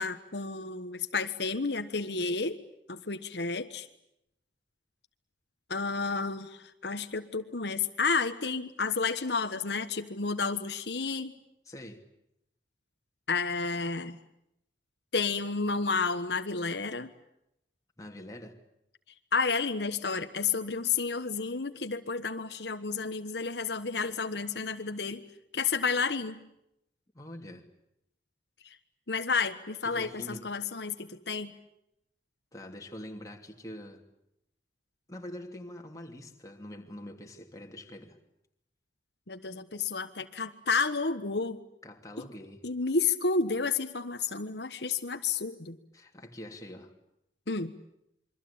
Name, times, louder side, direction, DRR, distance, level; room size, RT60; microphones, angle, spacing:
voice 1, 0.0-2.6 2.9-3.9 5.7-11.3 13.3-14.2 15.1-17.1 19.3-25.2 25.5-26.4 28.6-28.8 29.1-31.5 39.3-41.6 42.2-42.3 42.6-45.8 47.5-47.7, left 4 dB, 70° left, 1.3 m, -31 dB
voice 2, 11.7-12.0 18.0-18.6 27.1-27.6 29.8-30.5 32.5-34.0 35.1-38.2 41.8-42.6 45.9-46.9, left 1 dB, 20° left, 2.9 m, -44 dB
27.5 x 23.5 x 8.8 m
head